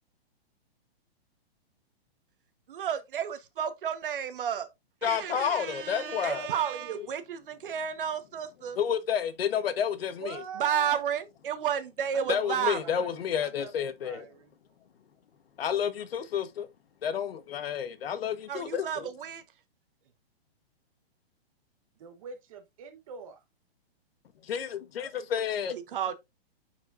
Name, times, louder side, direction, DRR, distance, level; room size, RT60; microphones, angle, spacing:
voice 1, 2.7-4.7 5.0-8.8 10.5-13.0 18.5-19.4 25.7-26.2, right 8 dB, 55° right, 1.2 m, -32 dB
voice 2, 5.0-6.4 8.8-10.4 12.3-14.3 15.6-16.7 17.0-18.9 24.4-25.8, left 8 dB, 65° left, 1.2 m, -30 dB
voice 3, 10.2-11.0 12.1-14.5 22.0-23.4, right 7 dB, 35° right, 1.1 m, -44 dB
9.6 x 4.7 x 2.5 m
hypercardioid pair, 170°, 31 cm